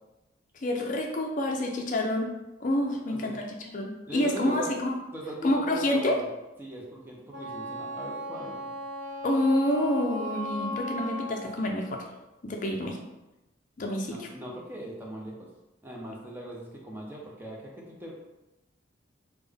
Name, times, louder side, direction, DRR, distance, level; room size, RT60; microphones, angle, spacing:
voice 1, 0.6-2.3 2.6-3.5 3.7-5.0 5.4-6.2 9.2-12.0 12.4-13.0 13.8-14.3, left 1 dB, 40° left, 1 dB, 0.4 m, -28 dB
voice 2, 2.9-3.6 4.1-4.8 5.1-6.3 6.6-8.7 14.1-15.3 15.8-18.1, equal, 10° right, -3 dB, 0.5 m, -40 dB
Wind instrument woodwind instrument, 7.3-11.6, left 1 dB, 65° right, 0.9 m, -36 dB
3.5 x 2.1 x 3.4 m, 1.0 s
head